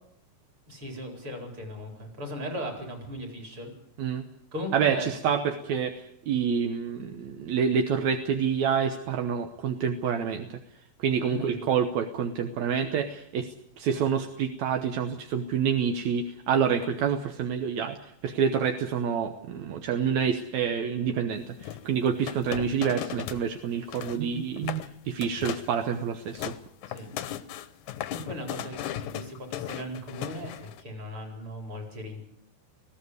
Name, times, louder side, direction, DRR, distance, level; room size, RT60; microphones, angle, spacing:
voice 1, 0.7-3.7 4.5-5.1 11.3-11.7 26.9-27.1 28.1-32.3, equal, 35° right, 3 dB, 5.2 m, -37 dB
voice 2, 4.7-10.6 11.0-26.5, right 7 dB, 65° right, 7 dB, 2.0 m, -28 dB
sound 1, 21.6-23.5 23.7-24.2 24.6-24.9 25.2-25.7 26.1-30.8, left 11 dB, 70° left, 2.1 m, -36 dB
20.0 x 15.5 x 9.6 m, 0.75 s
omnidirectional pair, 4.1 m